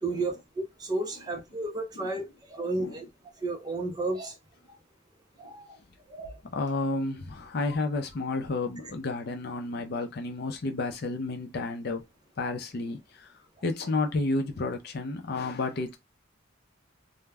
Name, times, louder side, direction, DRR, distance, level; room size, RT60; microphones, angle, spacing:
voice 1, 0.0-0.4 0.8-2.2 2.5-3.1 3.4-4.3 5.4-5.7 6.1-6.3, right 2 dB, 20° right, 0.5 m, -32 dB
voice 2, 6.5-12.0 12.4-13.3 13.6-16.0, left 3 dB, 50° left, 0.4 m, -31 dB
2.2 x 2.0 x 3.3 m
head